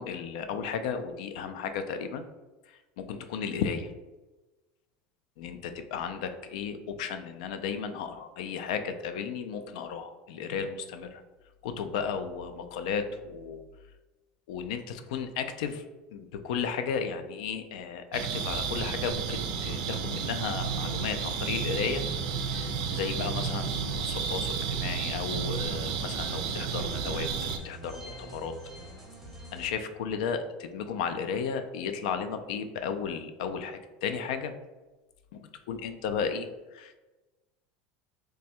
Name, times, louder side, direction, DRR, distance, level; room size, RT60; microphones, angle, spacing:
voice 1, 0.0-2.2 3.0-3.9 5.4-11.2 11.6-13.6 14.5-15.8 16.1-22.0 22.5-27.3 27.6-28.6 29.5-34.5 35.7-37.0, left 6 dB, 80° left, 8 dB, 0.4 m, -34 dB
sound 1, 18.1-27.6, right 6 dB, 85° right, 0.4 m, -32 dB
sound 2, 22.3-29.7, right 1 dB, 5° right, 0.7 m, -45 dB
3.2 x 2.2 x 4.2 m, 1.1 s
cardioid pair, 170°, 4 cm